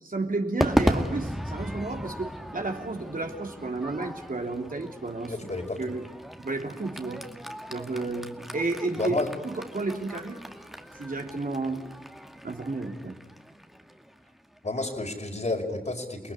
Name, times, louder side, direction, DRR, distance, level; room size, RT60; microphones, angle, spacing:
voice 1, 0.0-5.3 5.8-6.1 6.4-7.2 7.7-9.1 9.4-10.4 10.9-11.9 12.4-13.2, right 3 dB, 60° right, 3 dB, 3.3 m, -32 dB
Crowd / Fireworks, 0.6-15.0, equal, ahead, 2.2 m, -35 dB
voice 2, 5.3-5.8 9.0-9.3 14.6-16.3, left 2 dB, 45° left, 3 dB, 5.1 m, -30 dB
29.5 x 20.0 x 9.8 m, 1.1 s
wide cardioid pair, 60°, 16 cm